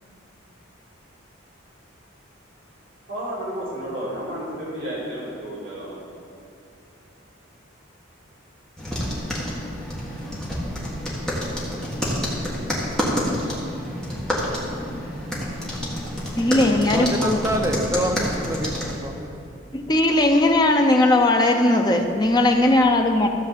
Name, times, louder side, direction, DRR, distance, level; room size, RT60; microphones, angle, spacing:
voice 1, 3.1-6.0, right 1 dB, 55° right, -6 dB, 2.4 m, -31 dB
sound 1, 8.8-19.0, equal, 5° left, 1.6 m, -28 dB
voice 2, 16.4-17.4 19.7-23.3, left 2 dB, 20° left, 3 dB, 0.7 m, -18 dB
voice 3, 16.9-19.9, right 1 dB, 15° right, 2 dB, 0.7 m, -27 dB
13.0 x 4.7 x 7.5 m, 2.6 s
head